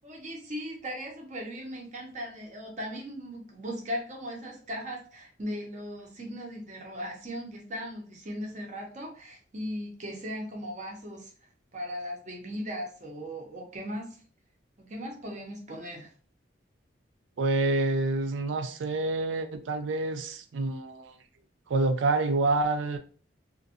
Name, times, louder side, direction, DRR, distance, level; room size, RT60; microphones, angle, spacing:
voice 1, 0.0-11.3 11.7-14.2 14.9-16.1, equal, 40° right, 0.7 m, -38 dB
voice 2, 17.4-21.1 21.7-23.0, right 2 dB, 80° right, 0.4 m, -27 dB
2.5 x 2.2 x 2.6 m
head